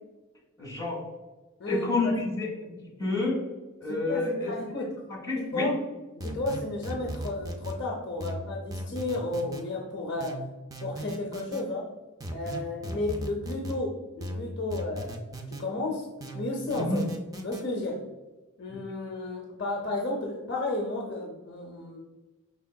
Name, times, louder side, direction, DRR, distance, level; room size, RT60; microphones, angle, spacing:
voice 1, 0.6-1.0 1.7-2.7 3.0-3.4 3.8-4.8 5.3-5.7 16.7-17.0, left 2 dB, 15° left, -3 dB, 1.4 m, -29 dB
voice 2, 1.6-2.1 3.9-5.0 5.4-5.8 6.2-10.4 10.8-11.9 12.3-15.2 15.5-16.1 16.3-17.0 17.4-18.0 18.6-22.0, left 2 dB, 55° left, -1 dB, 0.6 m, -33 dB
sound 1, 6.2-7.8 8.2-9.6 10.2-11.6 12.2-13.8 14.2-15.6 16.2-17.6, right 1 dB, 15° right, 0.3 m, -37 dB
5.5 x 3.4 x 2.2 m, 1.2 s
head